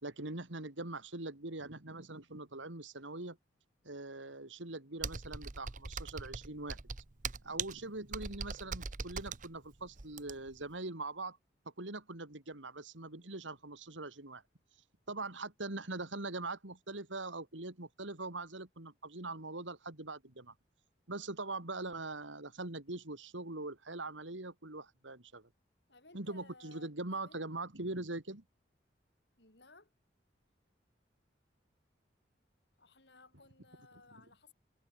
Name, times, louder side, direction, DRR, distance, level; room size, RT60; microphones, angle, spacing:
voice 1, 0.0-3.4 3.8-6.8 7.4-11.4 11.8-14.4 15.1-20.5 21.1-25.5 26.1-28.4, right 2 dB, 85° right, 3.1 m, -42 dB
Computer keyboard, 5.0-10.6, right 5 dB, 40° right, 1.0 m, -41 dB
voice 2, 25.9-27.4 29.4-29.9 32.8-34.5, left 3 dB, 65° left, 6.4 m, -60 dB
head